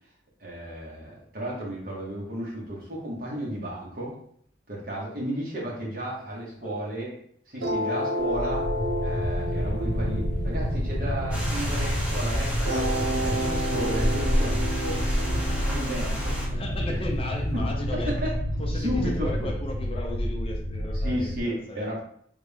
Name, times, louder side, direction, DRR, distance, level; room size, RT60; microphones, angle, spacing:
voice 1, 0.4-4.1 4.7-7.1 7.5-8.7 9.0-12.9 13.2-16.4 16.9-17.0 17.5-18.4 18.7-19.5 21.0-22.0, equal, 55° right, -4 dB, 1.3 m, -33 dB
voice 2, 6.6-7.0 16.5-18.1 18.6-21.9, left 1 dB, 35° left, 1 dB, 0.5 m, -35 dB
sound 1, 7.6-12.0 12.7-17.6, equal, 75° right, 0.7 m, -32 dB
sound 2, 8.2-21.4, equal, 65° left, 1.0 m, -29 dB
sound 3, 11.3-16.5, equal, 10° right, 0.8 m, -31 dB
3.6 x 2.3 x 3.4 m, 0.62 s
head